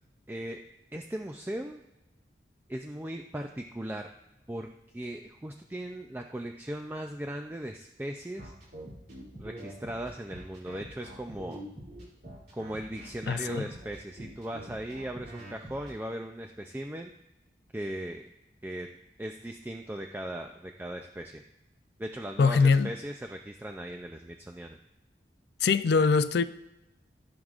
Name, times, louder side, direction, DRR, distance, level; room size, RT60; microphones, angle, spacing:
voice 1, 0.3-0.6 0.9-1.8 2.7-4.1 4.5-4.7 4.9-8.5 9.4-11.6 12.5-17.1 17.7-18.3 18.6-18.9 19.2-21.4 22.0-24.8, right 1 dB, 10° right, 0.4 m, -38 dB
sound 1, 8.4-15.9, right 1 dB, 60° right, 3.1 m, -45 dB
voice 2, 13.3-13.6 22.4-22.9 25.6-26.4, left 5 dB, 70° left, 0.4 m, -23 dB
14.5 x 6.3 x 2.4 m
head